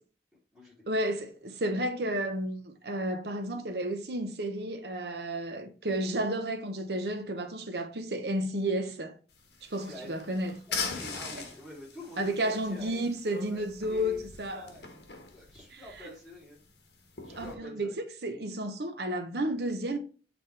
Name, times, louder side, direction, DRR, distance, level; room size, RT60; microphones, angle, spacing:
voice 1, 0.9-9.1 9.6-10.5 12.2-14.7 17.4-20.0, right 1 dB, 65° right, 0.9 m, -32 dB
sound 1, 9.3-17.5, left 5 dB, 65° left, 1.4 m, -42 dB
voice 2, 9.8-10.2 10.7-16.6 17.2-18.0, left 1 dB, 5° right, 3.0 m, -47 dB
7.7 x 3.9 x 3.3 m
head